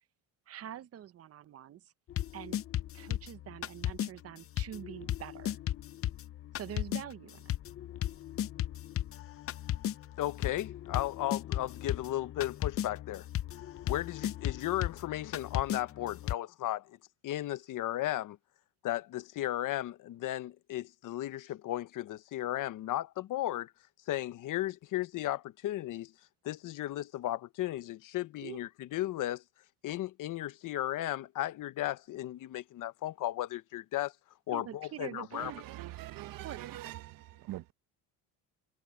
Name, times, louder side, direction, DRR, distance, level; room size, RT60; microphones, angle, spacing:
voice 1, 0.5-1.9 2.3-2.6 2.9-5.6 6.5-7.5 28.4-28.6 34.5-35.6 36.4-36.9, right 11 dB, 40° right, 0.8 m, -45 dB
sound 1, 2.1-4.1 4.6-16.3, left 12 dB, 35° left, 0.7 m, -36 dB
voice 2, 10.2-13.3 13.8-17.0 17.2-18.4 18.8-23.7 24.1-26.1 26.4-29.4 29.8-34.1 34.5-35.5, left 14 dB, 50° left, 1.1 m, -35 dB
voice 3, 35.3-37.7, right 15 dB, 60° right, 1.3 m, -43 dB
cardioid pair, 125°, 39 cm